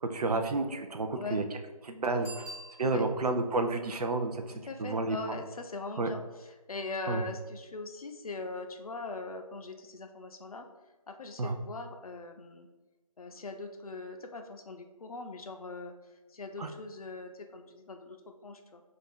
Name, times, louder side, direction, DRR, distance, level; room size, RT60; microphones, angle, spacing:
voice 1, 0.0-1.4 1.8-2.5 2.8-4.4 4.8-5.2 6.0-6.1 7.1-7.2 11.4-11.6 16.6-16.7, right 3 dB, 80° right, 6 dB, 0.5 m, -30 dB
Bicycle bell, 2.2-3.4 8.8-8.9, right 1 dB, 20° right, 1.2 m, -46 dB
voice 2, 4.5-10.7 11.1-12.7 13.2-18.8, left 3 dB, 70° left, 5 dB, 0.5 m, -41 dB
2.5 x 2.3 x 3.5 m, 1.2 s
figure-of-eight pair, 175°, 19 cm